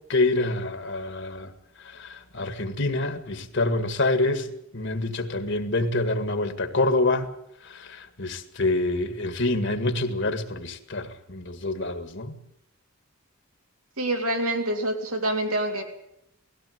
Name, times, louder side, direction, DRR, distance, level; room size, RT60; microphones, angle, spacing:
voice 1, 0.1-1.5 1.8-4.5 4.7-7.3 7.7-12.4, left 2 dB, 55° left, 1.8 m, -26 dB
voice 2, 14.0-15.8, right 1 dB, 90° right, 3.5 m, -26 dB
18.0 x 16.0 x 9.3 m
head